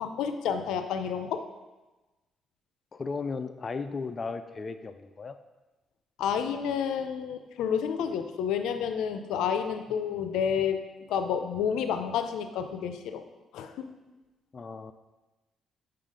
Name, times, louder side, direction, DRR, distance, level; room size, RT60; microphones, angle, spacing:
voice 1, 0.0-1.4 6.2-10.8 11.1-13.2 13.5-13.9, left 7 dB, 90° left, 9 dB, 0.5 m, -30 dB
voice 2, 2.9-5.4 14.5-14.9, left 4 dB, 35° left, 9 dB, 0.4 m, -35 dB
5.7 x 5.7 x 5.1 m, 1.1 s
cardioid pair, 90°, 0 cm